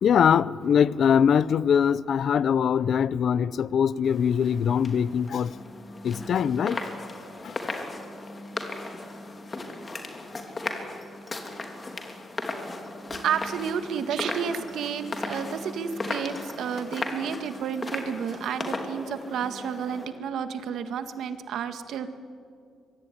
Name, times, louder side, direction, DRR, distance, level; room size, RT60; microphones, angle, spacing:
voice 1, 0.0-5.5 6.0-6.8 7.4-7.5, left 7 dB, 55° left, 0.6 m, -22 dB
sound 1, 4.0-20.1, left 2 dB, 25° left, 3.3 m, -36 dB
voice 2, 13.1-22.1, right 7 dB, 75° right, 1.8 m, -31 dB
25.0 x 23.0 x 9.9 m
cardioid pair, 125°, 0 cm